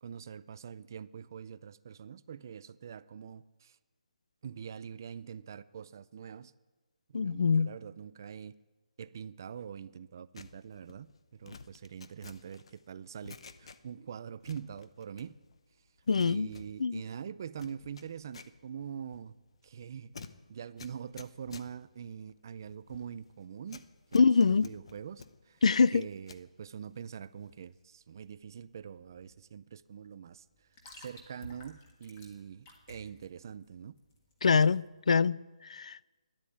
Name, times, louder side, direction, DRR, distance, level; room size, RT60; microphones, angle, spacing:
voice 1, 0.0-3.8 4.4-6.5 7.1-8.5 9.0-15.4 16.2-19.3 19.6-23.8 24.1-25.6 25.9-30.4 31.0-34.0, right 7 dB, 30° right, 0.4 m, -44 dB
voice 2, 7.1-7.7 16.1-16.5 16.8-17.0 24.1-24.7 25.6-26.0 34.4-36.0, left 5 dB, 60° left, 0.4 m, -25 dB
sound 1, 10.3-14.1 14.4-15.6 15.9-26.5 26.9-27.7 28.0-28.3, left 5 dB, 45° left, 0.8 m, -53 dB
sound 2, 28.3-34.9, left 1 dB, 20° left, 1.6 m, -55 dB
13.0 x 10.5 x 8.5 m
hypercardioid pair, 175°, 4 cm